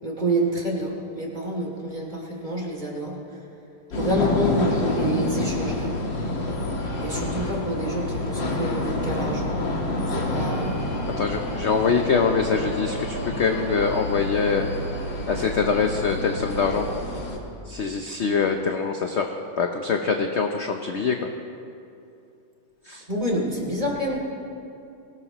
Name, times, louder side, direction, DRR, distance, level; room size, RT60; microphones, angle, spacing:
voice 1, 0.0-3.4 3.9-6.0 7.0-9.6 10.1-10.9 23.1-24.2, right 1 dB, 25° right, -2 dB, 2.7 m, -28 dB
sound 1, 3.9-17.4, left 1 dB, 75° left, 2.5 m, -28 dB
voice 2, 11.2-14.7 15.3-16.9 17.7-21.3 22.9-23.0, left 5 dB, 60° left, 4 dB, 0.7 m, -24 dB
23.5 x 18.0 x 3.0 m, 2.7 s
omnidirectional pair, 2.0 m